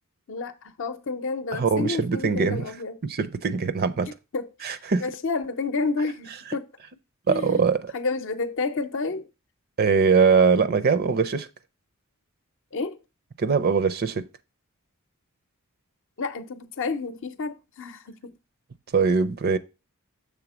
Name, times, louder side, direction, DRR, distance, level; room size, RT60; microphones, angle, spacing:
voice 1, 0.3-3.0 4.1-6.7 7.3-9.3 12.7-13.0 16.2-18.3, left 4 dB, 60° left, 0.7 m, -30 dB
voice 2, 1.5-2.6 3.0-4.1 4.6-5.0 7.3-7.9 9.8-11.5 13.4-14.2 18.9-19.6, right 5 dB, 45° right, 0.5 m, -22 dB
7.0 x 3.6 x 6.1 m
head